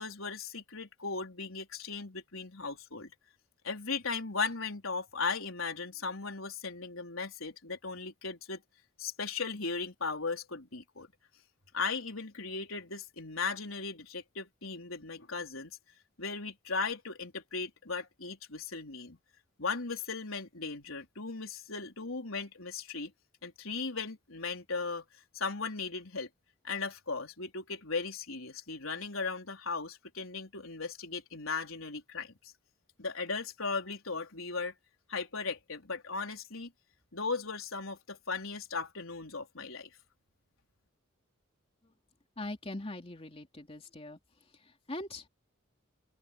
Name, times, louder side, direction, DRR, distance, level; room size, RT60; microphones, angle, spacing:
voice 1, 0.0-3.1 3.6-8.6 9.0-11.1 11.7-15.8 16.2-19.2 19.6-23.1 23.4-25.0 25.3-26.3 26.6-32.5 33.0-34.7 35.1-36.7 37.1-39.9, left 4 dB, 85° left, 4.2 m, -37 dB
voice 2, 42.4-44.2 44.6-45.3, left 2 dB, 30° left, 2.9 m, -41 dB
open air
head